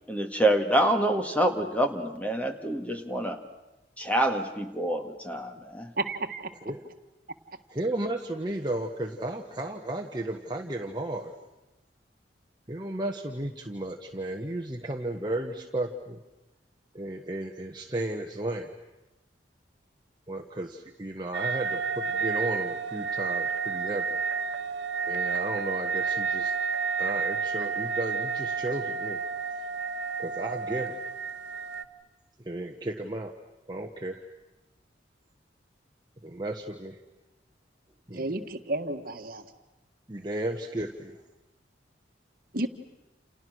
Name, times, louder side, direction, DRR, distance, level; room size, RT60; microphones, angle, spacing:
voice 1, 0.1-3.4 4.0-5.9, right 1 dB, 10° left, 5 dB, 1.8 m, -26 dB
voice 2, 6.0-6.5 38.1-39.4 42.5-42.7, right 2 dB, 50° right, 6 dB, 1.6 m, -31 dB
voice 3, 7.7-11.3 12.7-16.2 16.9-18.7 20.3-24.1 25.1-26.5 27.0-29.2 30.2-31.0 32.4-33.3 33.7-34.2 36.2-37.0 38.1-38.5 40.1-41.2, right 1 dB, 25° right, 2 dB, 1.3 m, -34 dB
sound 1, 21.3-31.8, right 5 dB, 70° right, 1.5 m, -30 dB
29.5 x 29.5 x 6.4 m, 1.0 s
head